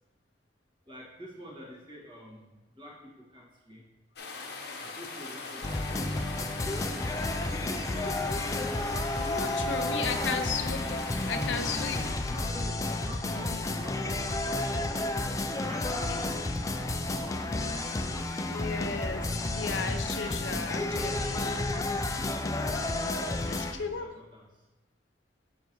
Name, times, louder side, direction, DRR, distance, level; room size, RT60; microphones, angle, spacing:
voice 1, 0.8-3.9 4.8-8.0 8.4-9.4 12.3-18.9 22.6-24.7, equal, 25° right, -5 dB, 1.7 m, -48 dB
sound 1, 4.2-12.1, left 3 dB, 60° left, 0.9 m, -41 dB
sound 2, 5.6-23.7, left 2 dB, 20° left, 0.4 m, -31 dB
voice 2, 9.2-11.0 11.3-12.0 13.3-13.6 18.4-19.2 19.5-21.7 23.4-24.1, left 5 dB, 90° left, 7 dB, 0.6 m, -35 dB
6.9 x 6.7 x 3.0 m, 1.1 s
head